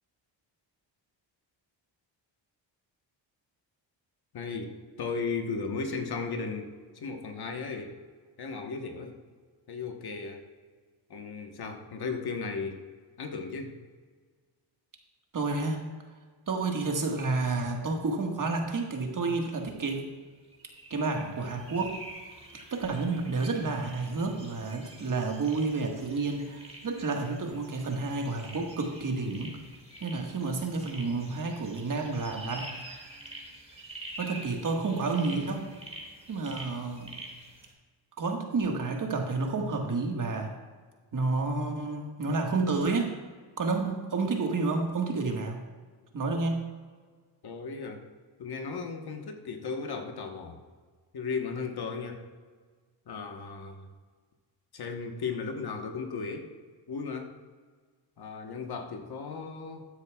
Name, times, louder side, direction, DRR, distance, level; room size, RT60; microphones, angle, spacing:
voice 1, 4.3-8.0 8.4-9.2 9.7-10.4 11.1-12.8 13.2-13.8 47.4-48.0 48.4-50.6 51.1-52.2 53.1-53.9 54.7-56.5 56.9-57.3 58.2-59.9, left 4 dB, 55° left, 4 dB, 1.2 m, -36 dB
voice 2, 15.3-15.8 16.5-20.0 20.9-22.0 22.7-29.6 30.0-32.7 34.2-35.7 36.3-37.2 38.2-40.5 41.1-43.1 43.6-45.6 46.1-46.6, right 3 dB, 45° right, 2 dB, 1.6 m, -30 dB
sound 1, 20.5-37.7, right 1 dB, 15° right, 2.1 m, -47 dB
13.5 x 9.4 x 2.3 m, 1.5 s
cardioid pair, 85°, 45 cm